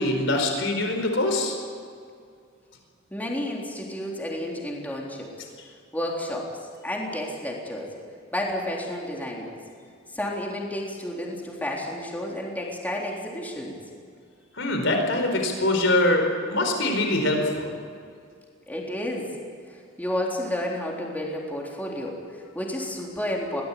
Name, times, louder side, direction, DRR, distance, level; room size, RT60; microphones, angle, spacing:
voice 1, 0.0-1.6 14.6-17.7, left 1 dB, 70° left, 3 dB, 4.7 m, -23 dB
voice 2, 3.1-5.3 5.9-6.5 6.8-7.9 8.3-9.6 10.1-13.8 18.7-19.3 20.0-23.6, left 1 dB, 10° left, -2 dB, 3.8 m, -31 dB
23.0 x 18.5 x 8.6 m, 2.2 s
head